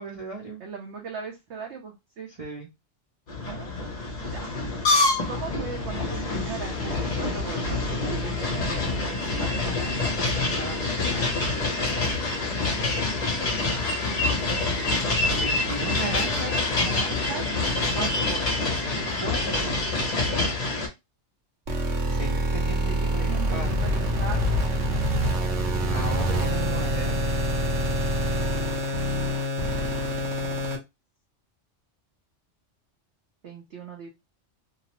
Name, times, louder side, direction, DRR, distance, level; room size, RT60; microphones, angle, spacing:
voice 1, 0.0-0.6 2.4-2.7 15.4-17.2 18.9-20.1 22.1-23.7 25.9-27.2, right 3 dB, 45° right, 0 dB, 0.5 m, -36 dB
voice 2, 0.6-2.3 3.4-3.7 4.3-4.5 5.3-11.2 16.8-18.7 22.7-24.5 29.6-30.7 33.4-34.1, right 5 dB, 70° right, 0 dB, 0.9 m, -39 dB
sound 1, 3.3-20.9, left 3 dB, 40° left, 0.7 m, -26 dB
sound 2, 21.7-30.8, equal, 85° right, 1.1 m, -26 dB
2.8 x 2.0 x 2.9 m, 0.22 s
omnidirectional pair, 1.3 m